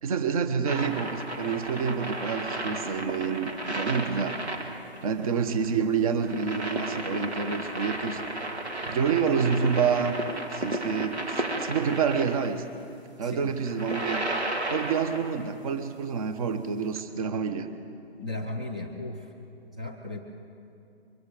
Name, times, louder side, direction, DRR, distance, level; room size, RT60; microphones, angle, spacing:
voice 1, 0.0-4.4 5.0-8.2 8.8-10.2 10.5-12.6 13.2-14.2 14.7-17.7, right 6 dB, 35° right, 10 dB, 1.2 m, -28 dB
sound 1, 0.6-12.5 13.5-15.4 17.0-17.1, right 1 dB, 85° right, 2.8 m, -33 dB
voice 2, 13.2-13.5 18.2-19.3 19.8-20.2, left 2 dB, 10° right, 2 dB, 0.4 m, -36 dB
23.5 x 23.0 x 5.1 m, 2.6 s
figure-of-eight pair, 145°, 32 cm